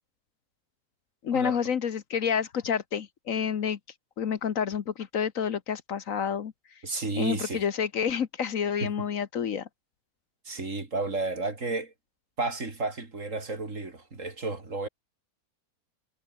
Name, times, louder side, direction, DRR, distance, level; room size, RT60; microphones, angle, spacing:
voice 1, 1.2-3.8 4.2-6.8 7.2-9.7, left 7 dB, 60° left, 1.4 m, -29 dB
voice 2, 6.8-7.6 8.8-8.9 10.5-11.9 12.4-14.9, right 3 dB, 55° right, 3.9 m, -32 dB
omnidirectional pair, 1.6 m